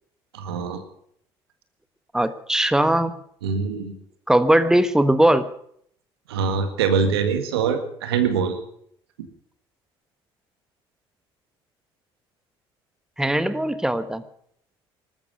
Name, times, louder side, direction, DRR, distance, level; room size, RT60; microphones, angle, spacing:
voice 1, 0.3-0.8 3.4-3.9 6.3-8.6, right 6 dB, 85° right, 8 dB, 1.9 m, -23 dB
voice 2, 2.1-3.2 4.3-5.5 13.2-14.2, right 1 dB, 5° right, 12 dB, 1.3 m, -19 dB
19.5 x 13.5 x 5.4 m, 0.67 s
hypercardioid pair, 55°, 13 cm